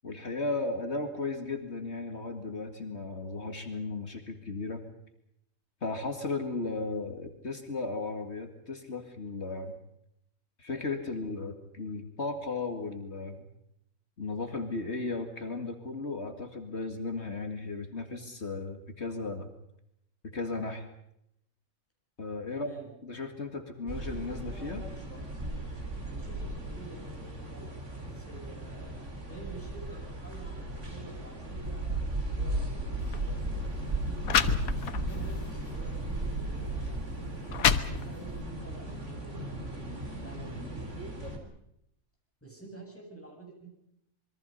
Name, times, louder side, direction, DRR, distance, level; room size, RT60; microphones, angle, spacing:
voice 1, 0.0-4.8 5.8-9.8 10.6-13.4 14.2-19.5 20.3-20.9 22.2-22.7 23.0-24.8, left 3 dB, 50° left, 6 dB, 2.4 m, -35 dB
voice 2, 22.5-22.9 26.0-32.9 33.8-37.1 37.7-40.9 42.4-43.7, right 3 dB, 10° left, 0 dB, 8.1 m, -49 dB
sound 1, 23.9-41.4, right 2 dB, 55° right, 4.1 m, -36 dB
sound 2, 32.3-41.5, equal, 35° left, 6.3 m, -50 dB
sound 3, 33.0-33.2 33.9-34.0 34.2-35.2 35.7-35.9 36.7-36.8 37.3-38.4, left 7 dB, 85° left, 1.5 m, -28 dB
27.0 x 22.5 x 5.5 m, 0.77 s
omnidirectional pair, 1.4 m